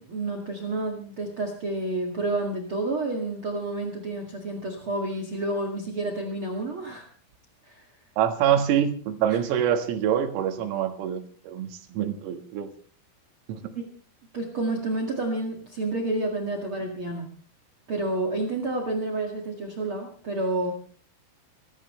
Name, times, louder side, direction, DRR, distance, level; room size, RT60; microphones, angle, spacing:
voice 1, 0.0-7.1 7.6-7.8 9.3-9.4 14.3-17.3 17.9-20.7, right 2 dB, 60° right, 3 dB, 1.4 m, -29 dB
voice 2, 8.2-12.7 13.5-13.7, right 9 dB, 80° right, 6 dB, 4.3 m, -25 dB
25.5 x 13.5 x 3.2 m, 0.42 s
omnidirectional pair, 6.0 m